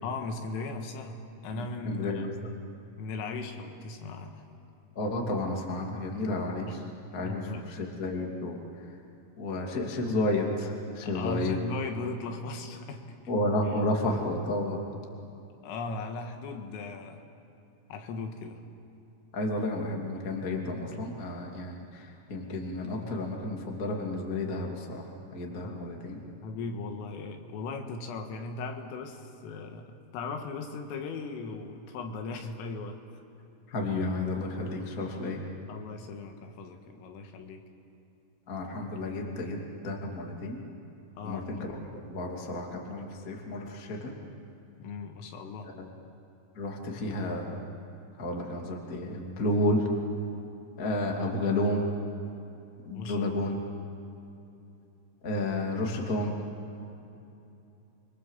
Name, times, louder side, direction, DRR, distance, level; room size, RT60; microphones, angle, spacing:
voice 1, 0.0-2.3 3.0-4.4 6.7-6.8 7.2-7.7 11.0-13.2 13.7-13.8 15.6-17.2 17.9-18.6 25.6-25.8 26.4-33.0 34.8-35.0 35.7-37.7 41.2-41.5 44.8-45.7 52.9-53.3, left 3 dB, 80° left, 4 dB, 4.2 m, -38 dB
voice 2, 1.5-2.3 5.0-6.8 7.1-8.6 9.4-11.6 13.3-14.8 19.3-26.3 33.7-35.4 38.5-40.6 41.2-44.1 45.7-45.9 46.6-47.7 48.2-49.9 50.8-51.8 52.8-53.6 55.2-56.3, left 1 dB, 25° left, 0 dB, 1.8 m, -31 dB
29.0 x 23.0 x 7.4 m, 2.8 s
omnidirectional pair, 6.0 m